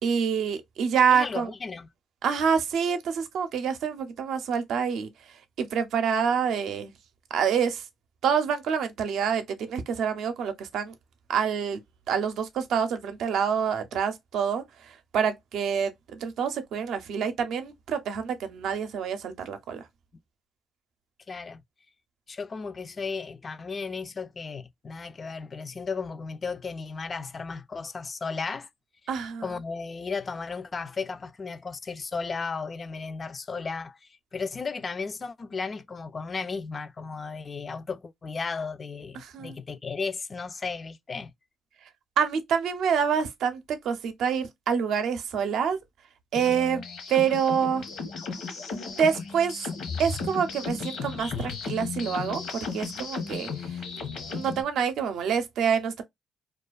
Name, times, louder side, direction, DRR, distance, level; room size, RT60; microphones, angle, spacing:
voice 1, 0.0-1.5 2.2-5.1 5.6-6.9 7.3-7.8 8.2-10.9 11.3-11.8 12.1-19.9 29.1-29.5 39.1-39.6 42.2-45.8 46.3-46.8 47.1-47.8 49.0-49.7 50.0-53.8 54.3-56.0, right 7 dB, 75° right, 0.5 m, -27 dB
voice 2, 1.1-1.9 21.3-21.6 22.3-28.7 29.4-34.0 34.3-41.3 51.3-51.5, left 4 dB, 35° left, 0.3 m, -34 dB
sound 1, 46.3-54.6, left 5 dB, 75° left, 0.9 m, -35 dB
2.4 x 2.3 x 2.2 m
cardioid pair, 90°, 0 cm